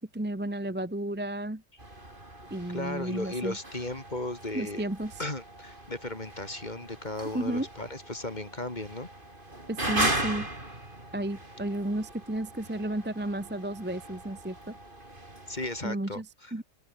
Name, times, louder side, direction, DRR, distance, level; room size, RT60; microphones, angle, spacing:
voice 1, 0.0-1.6 2.5-3.5 4.5-5.1 7.3-7.7 9.7-10.5 11.1-14.7 15.8-16.3 16.5-16.6, right 1 dB, 10° right, 1.0 m, -32 dB
sound 1, 1.8-15.9, right 1 dB, 40° right, 6.1 m, -38 dB
voice 2, 2.7-4.8 5.2-9.1 15.5-16.5, left 2 dB, 35° left, 3.6 m, -36 dB
open air
omnidirectional pair, 1.4 m